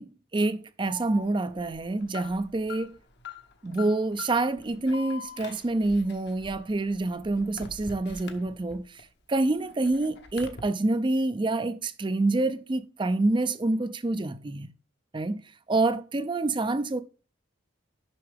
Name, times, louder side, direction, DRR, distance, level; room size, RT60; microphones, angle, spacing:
voice 1, 0.0-2.9 3.6-9.0 9.3-14.7 15.1-17.0, right 2 dB, 25° right, 0.4 m, -27 dB
Alarm, 0.8-9.0 9.4-10.6, left 4 dB, 55° left, 1.0 m, -44 dB
6.8 x 5.8 x 3.5 m
head